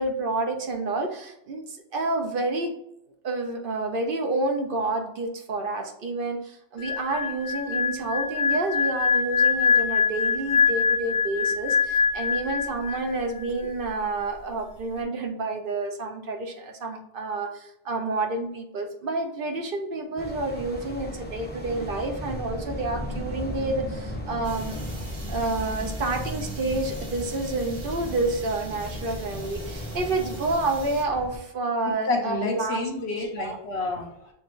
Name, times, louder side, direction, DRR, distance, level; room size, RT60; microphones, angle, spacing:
voice 1, 0.0-2.7 3.2-24.8 25.3-32.8 33.4-33.6, right 2 dB, 60° right, 4 dB, 0.8 m, -29 dB
sound 1, 6.8-13.2 13.4-13.7, left 6 dB, 55° left, 0.6 m, -24 dB
sound 2, 20.2-31.4, left 1 dB, 10° left, 0.7 m, -35 dB
Sink water fx, 24.4-31.0, right 2 dB, 75° right, 1.4 m, -46 dB
voice 2, 32.1-34.3, left 2 dB, 80° left, 2 dB, 1.2 m, -29 dB
6.8 x 2.5 x 3.1 m, 0.80 s
omnidirectional pair, 1.1 m